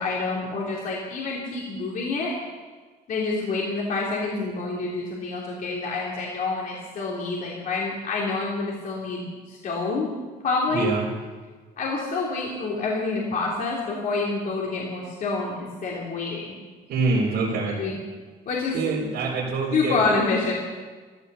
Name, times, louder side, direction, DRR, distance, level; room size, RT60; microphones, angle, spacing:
voice 1, 0.0-2.4 3.1-10.1 10.4-10.9 11.8-16.5 17.8-18.0 18.5-18.8 19.7-20.5, left 3 dB, 55° left, -3 dB, 3.0 m, -27 dB
voice 2, 10.7-11.0 16.9-17.8 18.7-20.1, right 3 dB, 75° right, -7 dB, 4.5 m, -25 dB
15.0 x 13.0 x 6.9 m, 1.4 s
cardioid pair, 110°, 17 cm